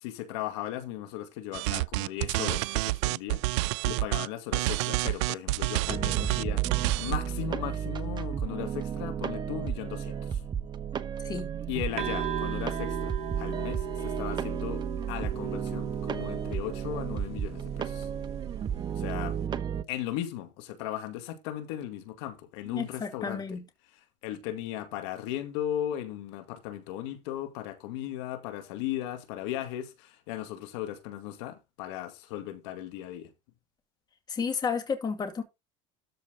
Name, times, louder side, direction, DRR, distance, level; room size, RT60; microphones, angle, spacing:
voice 1, 0.0-10.4 11.7-18.1 19.0-19.4 19.9-23.6 23.9-33.3, left 12 dB, 80° left, 2.1 m, -37 dB
sound 1, 1.5-4.3 4.5-7.3, right 21 dB, 80° right, 0.5 m, -28 dB
sound 2, 5.9-19.8, right 7 dB, 30° right, 1.1 m, -33 dB
sound 3, 12.0-19.5, right 8 dB, 45° right, 2.0 m, -39 dB
voice 2, 22.7-23.6 34.3-35.4, left 5 dB, 25° left, 2.3 m, -32 dB
13.0 x 5.2 x 4.0 m
supercardioid pair, 115°, 15 cm